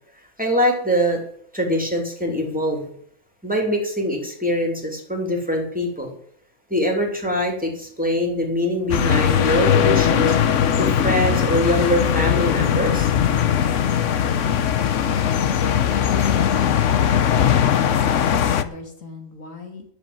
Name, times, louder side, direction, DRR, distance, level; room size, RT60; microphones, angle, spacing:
voice 1, 0.4-1.2 1.5-2.9 3.4-6.1 6.7-10.4 10.8-13.1, equal, 5° right, 1 dB, 3.0 m, -23 dB
sound 1, 8.9-18.6, left 8 dB, 70° left, 1.2 m, -19 dB
voice 2, 16.1-19.8, left 4 dB, 90° left, 3 dB, 2.8 m, -39 dB
11.5 x 7.4 x 8.8 m, 0.65 s
omnidirectional pair, 1.3 m